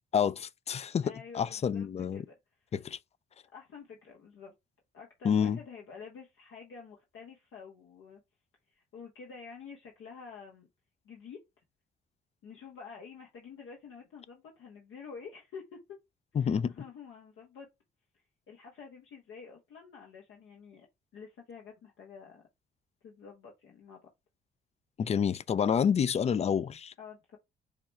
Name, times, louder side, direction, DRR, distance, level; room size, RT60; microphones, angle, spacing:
voice 1, 0.1-2.2 2.7-3.0 5.2-5.6 16.4-16.7 25.0-26.9, left 7 dB, 35° left, 0.4 m, -28 dB
voice 2, 1.0-2.3 2.7-2.8 3.5-4.5 4.9-8.2 8.7-10.7 11.0-11.4 12.4-16.0 16.3-17.7 18.5-20.9 21.1-22.4 23.0-24.0 27.0-27.4, left 6 dB, 80° left, 1.0 m, -49 dB
4.9 x 2.2 x 4.1 m
cardioid pair, 90°, 20 cm